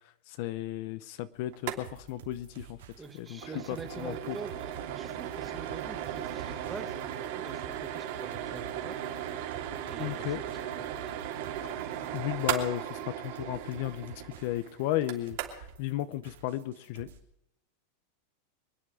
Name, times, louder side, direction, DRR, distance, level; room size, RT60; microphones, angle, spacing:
voice 1, 0.3-2.8 3.1-3.4 3.7-4.4 10.0-10.4 12.1-17.1, left 14 dB, 45° left, 13 dB, 0.7 m, -34 dB
sound 1, 1.5-1.8 2.1-2.2 2.5-2.7 3.1-15.8, right 10 dB, 55° right, 3.0 m, -37 dB
sound 2, 1.8-17.2, right 9 dB, 90° right, 2.8 m, -52 dB
voice 2, 3.0-7.0 7.4-9.0 9.8-11.1, right 4 dB, 10° right, 6 dB, 1.5 m, -45 dB
25.0 x 10.0 x 4.8 m, 0.83 s
supercardioid pair, 170°, 0 cm